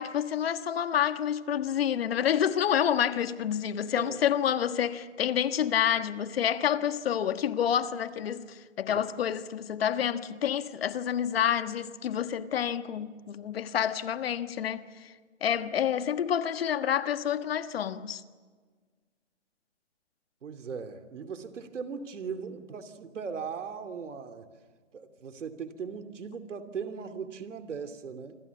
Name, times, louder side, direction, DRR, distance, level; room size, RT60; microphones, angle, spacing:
voice 1, 0.0-15.1 15.4-18.2, left 9 dB, 55° left, 1.4 m, -28 dB
voice 2, 20.4-24.5 24.9-28.3, right 6 dB, 75° right, 2.8 m, -38 dB
26.5 x 26.0 x 7.1 m
hypercardioid pair, 155°, 37 cm